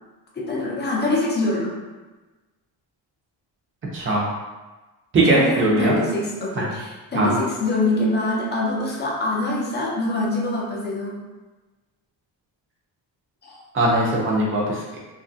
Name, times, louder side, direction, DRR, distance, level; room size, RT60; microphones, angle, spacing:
voice 1, 0.4-1.8 5.2-11.3 13.4-13.6, left 2 dB, 25° left, -3 dB, 0.5 m, -24 dB
voice 2, 3.9-4.2 5.1-6.0 6.6-6.7 7.1-7.3 13.7-14.8, right 2 dB, 30° right, -4 dB, 0.7 m, -20 dB
2.8 x 2.4 x 2.7 m, 1.2 s
cardioid pair, 150°, 44 cm